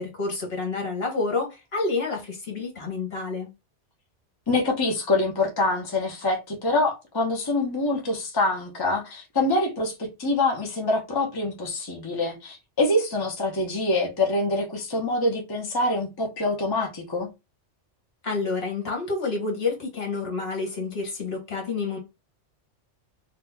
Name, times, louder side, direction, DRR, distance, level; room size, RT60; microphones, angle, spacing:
voice 1, 0.0-3.5 18.2-22.0, left 3 dB, 60° left, 1.5 m, -29 dB
voice 2, 4.5-17.3, left 2 dB, 25° left, 0.7 m, -25 dB
2.8 x 2.4 x 3.4 m
omnidirectional pair, 1.2 m